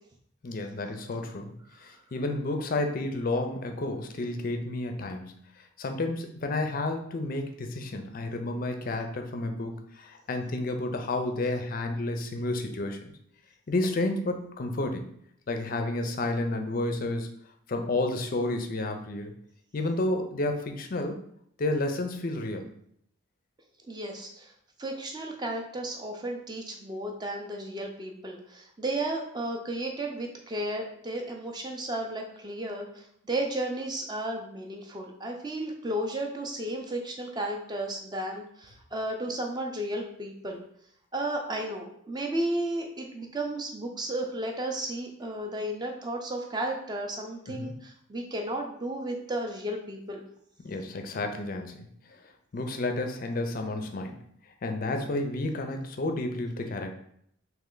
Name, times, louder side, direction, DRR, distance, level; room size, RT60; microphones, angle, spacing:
voice 1, 0.4-13.1 13.7-15.0 15.5-17.3 17.7-19.3 19.7-21.2 21.6-22.7 47.5-47.7 50.6-54.2 54.6-56.9, left 2 dB, 40° left, 5 dB, 0.4 m, -31 dB
voice 2, 23.9-24.5 24.8-40.6 41.1-50.2, right 1 dB, 20° right, 2 dB, 0.4 m, -33 dB
3.2 x 2.9 x 3.8 m, 0.70 s
head